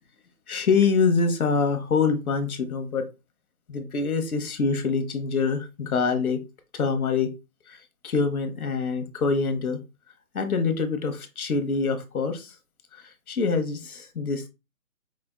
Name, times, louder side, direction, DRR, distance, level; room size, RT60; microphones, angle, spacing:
voice 1, 0.5-3.1 3.7-6.4 6.7-7.3 7.7-9.8 10.3-12.5 12.9-14.5, left 5 dB, 75° left, 8 dB, 0.9 m, -25 dB
5.0 x 2.4 x 2.3 m, 0.27 s
hypercardioid pair, 180°, 43 cm